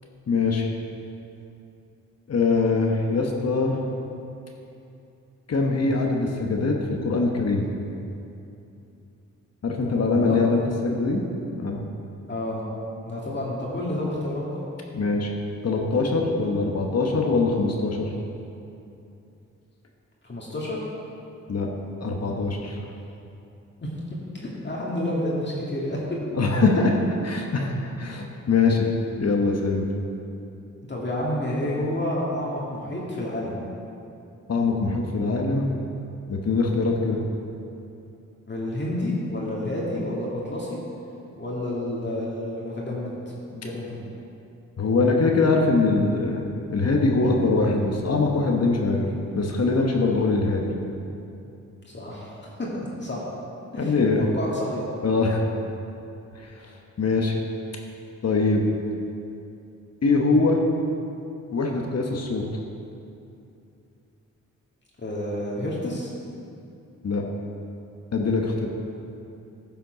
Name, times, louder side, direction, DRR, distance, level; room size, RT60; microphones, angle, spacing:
voice 1, 0.3-0.7 2.3-3.8 5.5-7.6 9.6-11.2 11.5-11.8 14.9-15.3 15.6-18.1 21.5-21.7 22.0-22.8 26.3-27.0 27.2-28.9 29.2-29.8 34.5-35.7 36.3-37.2 44.8-46.4 46.7-49.1 49.3-50.7 53.8-54.3 55.0-55.4 56.3-56.5 57.0-57.4 58.2-58.6 60.0-60.6 61.5-62.4 67.0-67.2 68.1-68.7, left 3 dB, 50° left, 1 dB, 1.2 m, -22 dB
voice 2, 9.8-10.4 12.3-12.6 13.0-14.6 20.2-20.9 23.8-23.9 24.3-26.0 30.9-33.6 38.5-40.8 41.4-43.2 43.5-44.0 51.9-52.7 53.0-53.3 53.7-54.8 65.0-66.1, left 1 dB, 35° left, -5 dB, 2.0 m, -29 dB
10.5 x 5.7 x 5.1 m, 2.7 s
cardioid pair, 55°, 32 cm